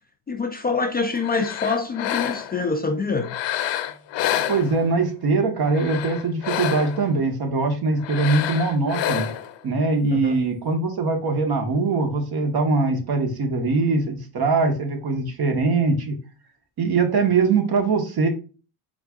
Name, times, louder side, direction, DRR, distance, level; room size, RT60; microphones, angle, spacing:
voice 1, 0.3-3.3 10.1-10.4, left 4 dB, 20° left, 0.5 m, -25 dB
sound 1, 1.2-2.7 3.2-5.1 5.6-7.1 8.0-9.6, left 11 dB, 65° left, 0.7 m, -28 dB
voice 2, 4.5-9.3 9.6-16.2 16.8-18.3, right 3 dB, 50° right, 1.4 m, -22 dB
4.6 x 3.7 x 2.4 m
supercardioid pair, 80°, 47 cm